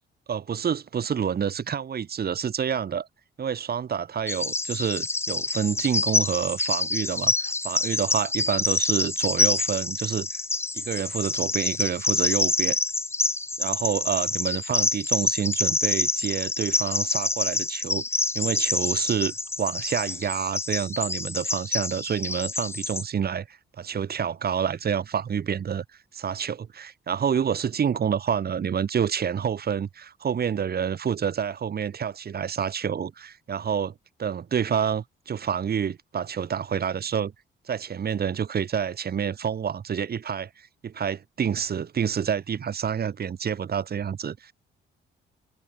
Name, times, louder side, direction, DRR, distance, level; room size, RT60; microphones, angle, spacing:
voice 1, 0.3-3.1 3.4-10.4 10.7-12.7 13.6-18.0 18.3-25.8 26.1-33.9 34.2-37.3 37.7-44.5, right 7 dB, 50° right, 5.1 m, -28 dB
Bird vocalization bird call bird song, 4.3-23.0, left 3 dB, 15° left, 0.4 m, -27 dB
cardioid pair, 90°, 20 cm